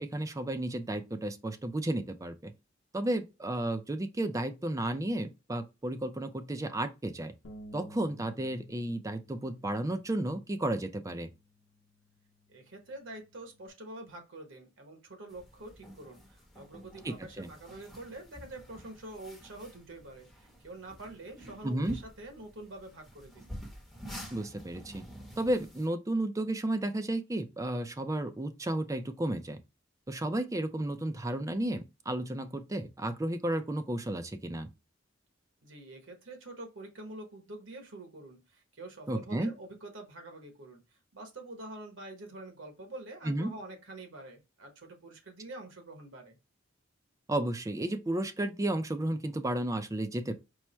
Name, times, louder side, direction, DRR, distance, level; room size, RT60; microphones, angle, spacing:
voice 1, 0.0-2.5 2.9-7.3 7.7-11.3 17.0-17.5 21.6-21.9 24.3-25.0 25.4-29.6 30.1-34.7 39.1-39.5 43.2-43.5 47.3-50.4, right 1 dB, 15° right, 0.4 m, -33 dB
Bass guitar, 7.4-13.7, equal, 70° left, 0.8 m, -54 dB
voice 2, 12.5-23.5 35.6-46.4, right 2 dB, 85° right, 1.2 m, -46 dB
sound 1, 15.3-25.9, equal, ahead, 1.0 m, -49 dB
4.6 x 2.1 x 4.2 m
head